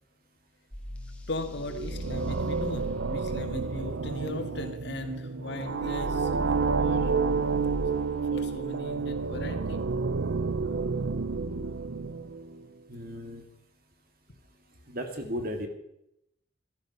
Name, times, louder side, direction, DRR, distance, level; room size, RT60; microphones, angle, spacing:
sound 1, 0.7-2.3 5.8-7.9, equal, 5° left, 1.8 m, -37 dB
voice 1, 1.3-6.3 6.8-7.2 8.1-9.8, left 2 dB, 60° left, 6 dB, 1.8 m, -38 dB
sound 2, 1.4-12.6, right 4 dB, 75° right, 0.6 m, -30 dB
voice 2, 12.9-13.4 14.9-15.7, equal, 50° right, 5 dB, 2.2 m, -35 dB
15.0 x 13.0 x 5.8 m, 0.81 s
head